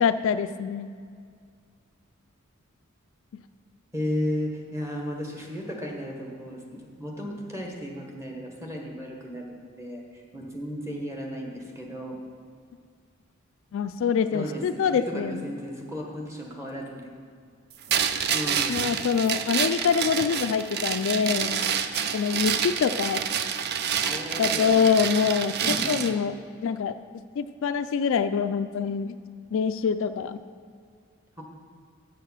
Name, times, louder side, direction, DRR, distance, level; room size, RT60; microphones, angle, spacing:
voice 1, 0.0-0.9 3.3-3.4 13.7-15.5 18.7-21.6 22.1-23.2 24.4-26.3 26.6-27.0 27.4-29.2 29.5-30.4, left 6 dB, 65° left, 10 dB, 0.3 m, -25 dB
voice 2, 3.9-12.2 14.3-17.1 18.3-19.0 24.0-24.9 25.6-26.1 31.4-31.5, equal, 15° right, 0 dB, 1.4 m, -34 dB
sound 1, 17.9-26.1, right 7 dB, 50° right, 0.4 m, -28 dB
8.0 x 6.6 x 6.2 m, 2.1 s
head